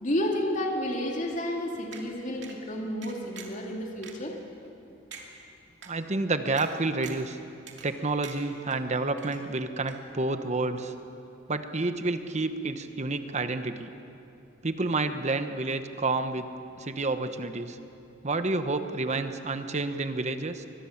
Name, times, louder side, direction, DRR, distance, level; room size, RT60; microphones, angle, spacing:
voice 1, 0.0-4.3, left 1 dB, 40° left, 0 dB, 2.5 m, -31 dB
sound 1, 1.9-2.0 2.4-2.6 3.0-3.6 4.0-4.1 4.6-4.7 5.1-5.3 5.8-5.9 6.6-6.7 7.0-7.3 7.7-8.0 8.2-8.8 9.2-9.6 9.9-10.0, right 7 dB, 65° right, 2.8 m, -44 dB
voice 2, 5.9-7.4 7.8-10.9 11.5-13.9 14.6-16.5 16.8-17.8 18.2-20.7, right 3 dB, 40° right, 9 dB, 1.0 m, -29 dB
23.5 x 21.0 x 7.2 m, 2.7 s
head